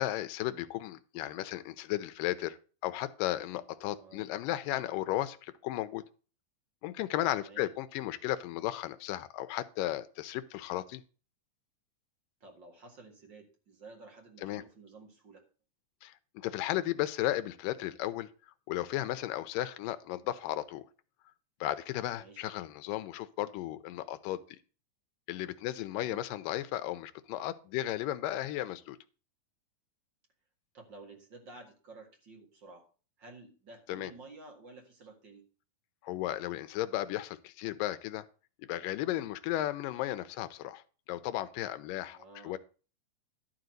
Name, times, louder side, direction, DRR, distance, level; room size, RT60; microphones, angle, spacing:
voice 1, 0.0-6.0 6.8-11.0 14.4-14.6 16.0-18.3 18.7-20.8 21.6-24.6 25.3-29.0 33.9-34.1 36.0-38.3 38.6-40.8 41.1-42.2 42.4-42.6, left 14 dB, 80° left, 12 dB, 2.3 m, -35 dB
voice 2, 3.9-4.2 7.4-7.7 12.4-15.4 22.2-22.5 25.9-26.2 30.7-32.9 33.2-35.5 42.1-42.6, right 3 dB, 40° right, 2 dB, 2.1 m, -52 dB
12.0 x 4.0 x 7.7 m, 0.37 s
omnidirectional pair, 4.0 m